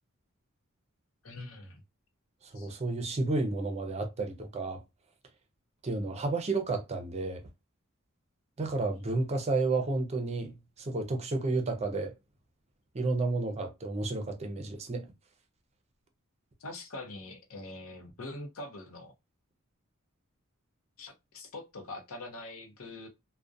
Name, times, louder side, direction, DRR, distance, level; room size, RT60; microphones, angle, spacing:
voice 1, 1.2-1.8 2.5-2.7 16.6-19.1 21.0-23.1, left 2 dB, 80° left, 0.6 m, -43 dB
voice 2, 2.5-4.8 5.8-7.4 8.6-12.1 12.9-15.0, right 3 dB, 30° right, 0.4 m, -31 dB
2.4 x 2.1 x 2.5 m
head